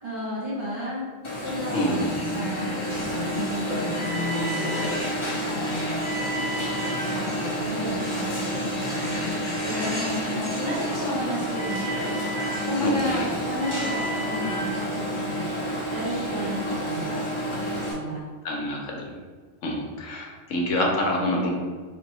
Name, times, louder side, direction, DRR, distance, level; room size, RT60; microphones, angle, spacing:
voice 1, 0.0-1.0 1.4-2.9 3.3-4.9 5.4-5.9 7.1-11.8 12.6-15.5 15.9-17.2 17.9-18.2, equal, 45° right, -7 dB, 1.4 m, -33 dB
Alarm, 1.2-17.9, equal, 35° left, 0.5 m, -29 dB
voice 2, 1.7-2.1 6.5-6.7 12.8-13.2 16.6-16.7 18.4-19.2 19.6-21.5, left 1 dB, 75° left, 0 dB, 1.0 m, -27 dB
4.4 x 2.6 x 2.9 m, 1.5 s
omnidirectional pair, 1.3 m